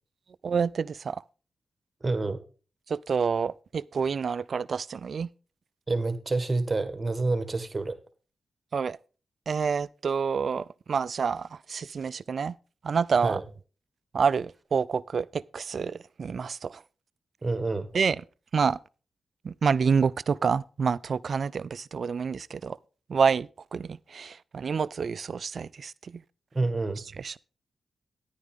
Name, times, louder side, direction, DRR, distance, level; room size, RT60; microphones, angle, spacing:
voice 1, 0.4-1.2 2.9-5.3 8.7-9.0 9.5-12.6 12.8-13.4 14.1-16.8 17.9-18.2 18.5-18.8 19.4-22.8 23.1-26.2 27.2-27.4, right 6 dB, 65° right, 0.4 m, -28 dB
voice 2, 2.0-2.4 5.9-8.0 13.2-13.4 17.4-17.9 26.5-27.0, right 3 dB, 35° right, 1.7 m, -28 dB
10.5 x 9.6 x 3.6 m
supercardioid pair, 45°, 0 cm